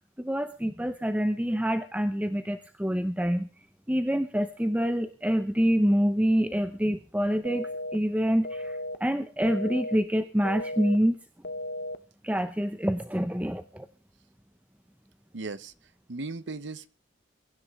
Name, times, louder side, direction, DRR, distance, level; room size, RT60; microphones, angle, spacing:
voice 1, 0.2-3.5 3.9-11.2 12.2-13.9, equal, 5° right, 9 dB, 0.7 m, -26 dB
sound 1, 7.4-7.9 8.4-8.9 9.4-9.9 10.4-10.9 11.4-11.9, left 1 dB, 50° left, 0.8 m, -35 dB
voice 2, 15.3-15.7 16.1-16.9, right 3 dB, 65° right, 15 dB, 0.9 m, -36 dB
22.5 x 11.0 x 3.6 m, 0.36 s
head